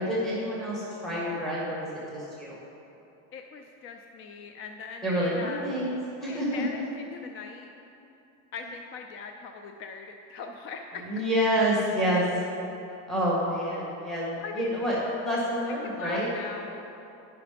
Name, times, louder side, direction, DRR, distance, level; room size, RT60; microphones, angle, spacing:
voice 1, 0.0-2.6 5.0-5.9 6.2-6.6 11.1-12.2 13.1-16.3, equal, ahead, -7 dB, 1.7 m, -28 dB
voice 2, 3.3-5.7 6.3-7.7 8.5-11.2 14.4-14.7 15.9-16.9, left 5 dB, 35° left, 4 dB, 0.4 m, -41 dB
10.5 x 5.8 x 5.1 m, 2.9 s
cardioid pair, 145°, 36 cm